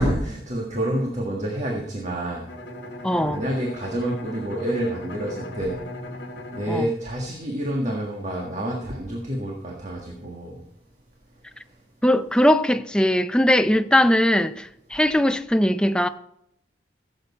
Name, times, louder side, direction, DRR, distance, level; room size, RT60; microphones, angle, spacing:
voice 1, 0.0-2.5 3.2-5.8 6.5-10.6, right 1 dB, 40° right, 1.6 m, -28 dB
Bowed string instrument, 2.5-8.1, left 1 dB, 65° left, 1.4 m, -38 dB
voice 2, 3.0-3.4 6.7-6.9 12.0-16.1, left 1 dB, 5° left, 0.4 m, -20 dB
15.5 x 8.0 x 4.2 m
head